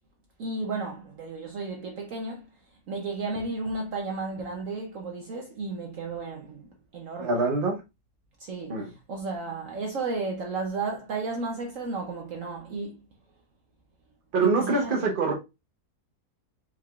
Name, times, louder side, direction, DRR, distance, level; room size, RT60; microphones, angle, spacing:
voice 1, 0.4-2.5 2.9-7.3 8.4-13.0 14.4-15.1, right 3 dB, 60° right, 1.1 m, -33 dB
voice 2, 7.2-7.8 8.7-8.9 14.3-15.3, right 3 dB, 40° right, 1.0 m, -24 dB
4.8 x 3.6 x 2.3 m
omnidirectional pair, 1.7 m